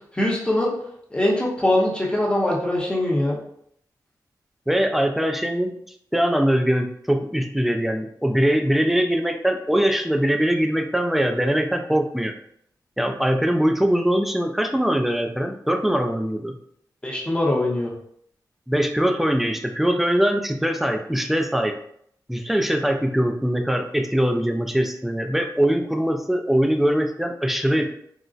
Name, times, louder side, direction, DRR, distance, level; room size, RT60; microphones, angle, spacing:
voice 1, 0.1-0.7 1.1-3.4 17.0-17.9, left 1 dB, 15° left, -3 dB, 0.7 m, -22 dB
voice 2, 4.7-5.7 6.1-12.3 13.0-16.5 18.7-21.7 22.3-27.8, equal, 5° right, 4 dB, 0.3 m, -22 dB
3.8 x 2.1 x 2.4 m, 0.68 s
wide cardioid pair, 125°, 7 cm